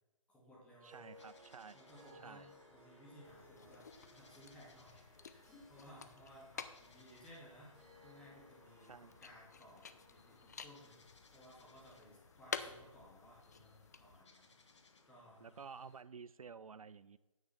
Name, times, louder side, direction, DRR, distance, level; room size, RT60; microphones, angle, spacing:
voice 1, 0.3-1.0 1.7-7.7 8.0-11.0 11.3-15.6, equal, 5° left, -5 dB, 2.1 m, -60 dB
Harp, 0.8-13.3, equal, 20° right, 2.2 m, -64 dB
voice 2, 0.8-1.8 2.1-2.5 8.9-9.1 15.4-17.2, right 5 dB, 80° right, 17 dB, 0.4 m, -52 dB
sound 1, 1.1-16.0, left 3 dB, 55° left, 1.2 m, -66 dB
sound 2, 3.2-14.2, left 6 dB, 30° left, 0.4 m, -51 dB
9.1 x 6.1 x 5.7 m, 1.1 s
figure-of-eight pair, 150°, 18 cm